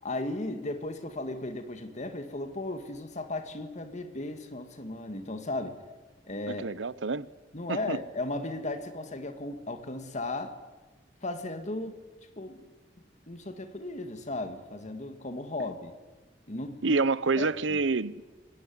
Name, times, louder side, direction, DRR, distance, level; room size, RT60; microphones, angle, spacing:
voice 1, 0.0-5.8 6.2-6.6 7.5-10.6 11.2-12.0 12.4-12.6 13.3-15.9 16.5-17.0 17.4-17.8, left 2 dB, 40° left, 2.3 m, -36 dB
voice 2, 6.5-7.3 7.7-8.0 16.8-18.3, right 3 dB, 85° right, 0.8 m, -28 dB
23.5 x 20.0 x 9.7 m
head